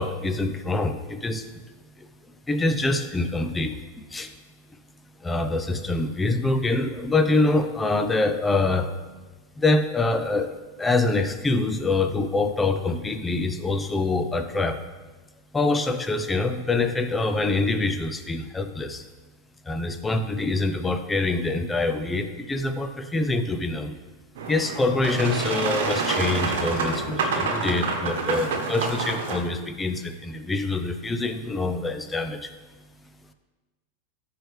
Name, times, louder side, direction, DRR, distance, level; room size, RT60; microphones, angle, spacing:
voice 1, 0.0-1.5 2.5-3.8 4.1-4.3 5.2-8.9 9.6-14.8 15.5-19.0 19.7-23.9 24.5-32.5, left 2 dB, 15° left, 8 dB, 0.7 m, -25 dB
Boat Water vehicle, 24.4-29.4, right 4 dB, 70° right, 1.2 m, -27 dB
13.5 x 4.8 x 3.3 m, 1.3 s
hypercardioid pair, 105°, 0 cm